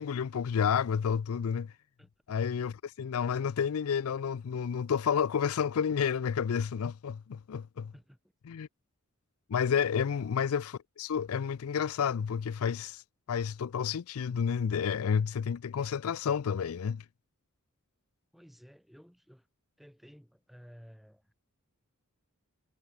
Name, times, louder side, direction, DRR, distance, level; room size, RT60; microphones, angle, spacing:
voice 1, 0.0-1.7 2.3-7.9 8.5-8.7 9.5-13.0 13.3-17.0, left 7 dB, 75° left, 0.4 m, -30 dB
voice 2, 18.3-19.5 19.8-21.3, equal, ahead, 2.7 m, -55 dB
head